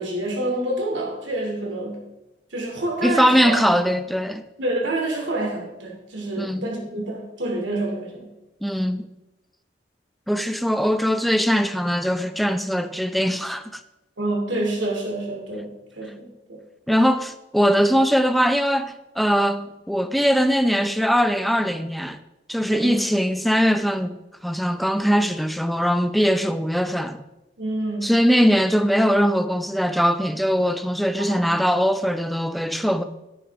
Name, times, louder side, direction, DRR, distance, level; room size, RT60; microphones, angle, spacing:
voice 1, 0.0-2.1 2.5-3.8 4.6-8.3 14.2-16.6 16.9-17.0 22.7-23.1 27.6-28.1 31.2-31.6, right 1 dB, 85° right, 2.7 m, -28 dB
voice 2, 3.0-4.4 6.4-6.7 8.6-9.1 10.3-13.6 16.9-22.2 22.5-24.2 24.4-27.2 28.0-33.0, equal, ahead, 0.5 m, -21 dB
10.5 x 9.4 x 3.6 m
head